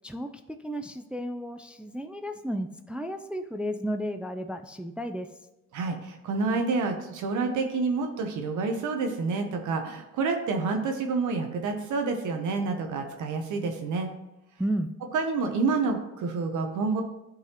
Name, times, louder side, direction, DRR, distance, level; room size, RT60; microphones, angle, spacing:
voice 1, 0.6-5.3 14.6-14.9, equal, 5° right, 7 dB, 0.3 m, -33 dB
voice 2, 5.7-14.1 15.1-17.0, right 4 dB, 80° right, 4 dB, 0.9 m, -28 dB
9.6 x 3.9 x 2.9 m, 0.97 s
cardioid pair, 90°, 30 cm